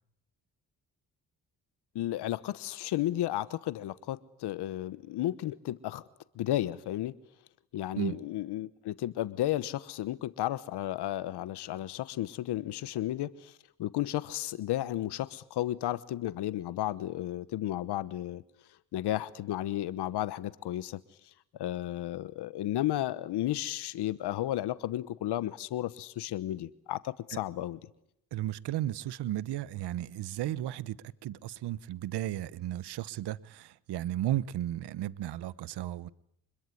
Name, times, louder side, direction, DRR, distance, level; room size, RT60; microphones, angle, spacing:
voice 1, 1.9-6.0 6.3-7.1 7.7-18.4 18.9-21.0 21.6-27.8, left 13 dB, 80° left, 1.1 m, -33 dB
voice 2, 28.3-31.0 31.2-36.1, right 13 dB, 80° right, 1.0 m, -34 dB
26.0 x 22.0 x 9.8 m
supercardioid pair, 55°, 39 cm